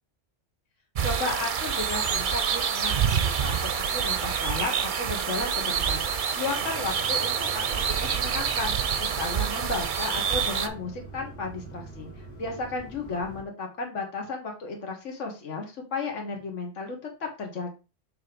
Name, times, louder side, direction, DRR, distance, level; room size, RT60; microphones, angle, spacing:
sound 1, 0.9-10.7, right 7 dB, 50° right, 0.7 m, -27 dB
voice 1, 1.0-3.0 3.4-6.0 6.3-7.5 8.0-8.7 9.0-12.1 12.4-17.8, left 3 dB, 80° left, 2 dB, 1.6 m, -33 dB
sound 2, 6.4-13.4, right 2 dB, 35° left, 2.2 m, -44 dB
6.7 x 3.1 x 5.0 m, 0.31 s
omnidirectional pair, 1.3 m